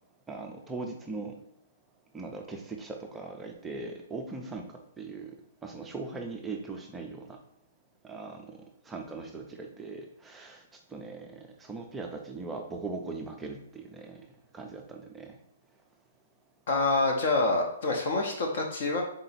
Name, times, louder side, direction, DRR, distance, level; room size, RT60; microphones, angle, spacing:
voice 1, 0.3-1.4 2.1-4.7 5.0-5.4 5.6-7.4 8.0-10.6 10.9-14.2 14.5-15.3, right 3 dB, 5° right, 2 dB, 0.4 m, -40 dB
voice 2, 16.7-19.0, left 3 dB, 45° left, 1 dB, 0.6 m, -26 dB
3.8 x 2.7 x 4.1 m, 0.77 s
hypercardioid pair, 175°, 0 cm